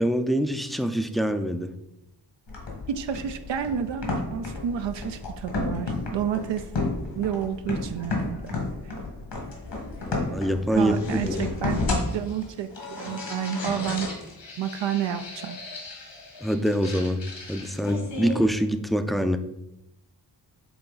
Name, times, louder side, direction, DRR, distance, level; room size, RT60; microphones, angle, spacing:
voice 1, 0.0-1.7 10.0-11.5 16.4-17.2 17.5-19.4, equal, ahead, 7 dB, 0.4 m, -25 dB
sound 1, 2.5-18.5, left 3 dB, 75° left, 1.8 m, -33 dB
voice 2, 2.9-6.6 7.2-8.6 8.8-8.9 10.7-11.8 12.1-14.1 14.6-15.6, right 8 dB, 80° right, 7 dB, 0.5 m, -30 dB
6.9 x 3.8 x 4.0 m, 0.87 s
cardioid pair, 75°, 43 cm